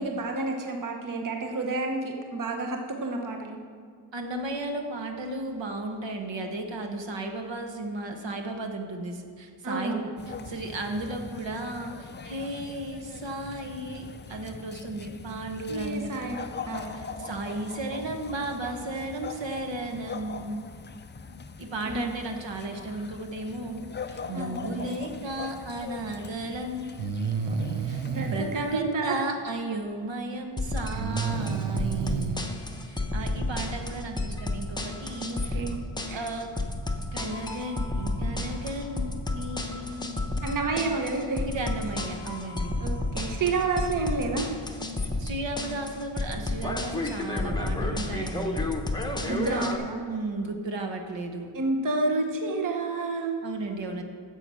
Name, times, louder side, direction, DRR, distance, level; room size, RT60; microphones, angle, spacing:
voice 1, 0.0-3.6 9.6-10.1 15.7-17.0 21.9-22.1 24.3-24.5 28.0-29.2 35.3-35.8 36.1-36.3 40.4-41.5 42.8-44.5 49.2-50.1 51.5-53.4, right 3 dB, 40° right, 2 dB, 1.0 m, -30 dB
voice 2, 4.1-10.0 10.4-16.1 16.7-20.7 21.6-26.9 27.8-32.5 32.9-35.6 36.1-36.5 37.1-40.2 41.4-42.8 45.2-48.6 49.2-49.7 50.1-51.5 53.4-54.0, right 2 dB, 60° right, 4 dB, 1.2 m, -34 dB
sound 1, 10.2-28.8, left 5 dB, 25° left, 0.4 m, -42 dB
Breathing, 26.1-26.2 27.0-28.5 30.9-32.4, right 6 dB, 85° right, 0.8 m, -30 dB
sound 2, 30.6-49.8, left 2 dB, 10° left, 0.8 m, -31 dB
9.7 x 7.5 x 6.2 m, 2.2 s
wide cardioid pair, 155°, 49 cm